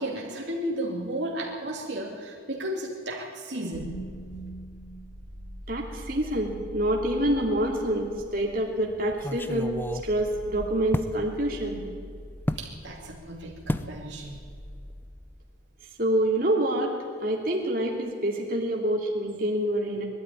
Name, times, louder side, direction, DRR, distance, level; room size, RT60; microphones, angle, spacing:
voice 1, 0.0-3.9 12.6-14.4, right 1 dB, 70° right, -1 dB, 2.5 m, -33 dB
sound 1, 3.7-15.8, equal, 50° left, 3.3 m, -43 dB
voice 2, 5.7-11.8 16.0-16.9 17.2-20.1, right 1 dB, 50° right, -1 dB, 2.7 m, -27 dB
sound 2, 7.3-7.8 8.2-8.3 9.1-11.2 12.5-12.7 13.7-14.0 14.3-14.6 14.9-15.0, left 1 dB, 10° left, 0.5 m, -32 dB
21.5 x 12.5 x 9.8 m, 2.2 s
head